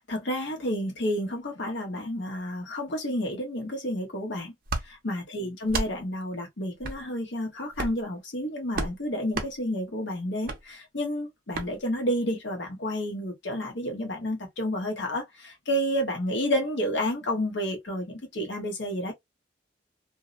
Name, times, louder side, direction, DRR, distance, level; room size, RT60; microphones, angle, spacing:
voice 1, 0.1-4.5 4.8-19.1, equal, 75° left, 0.9 m, -30 dB
sound 1, 4.7-4.9 5.6-5.9 6.8-7.0 7.7-8.0 8.7-8.9 9.3-9.5 10.4-10.6 11.5-11.7, right 2 dB, 50° right, 0.6 m, -30 dB
2.6 x 2.0 x 2.4 m
head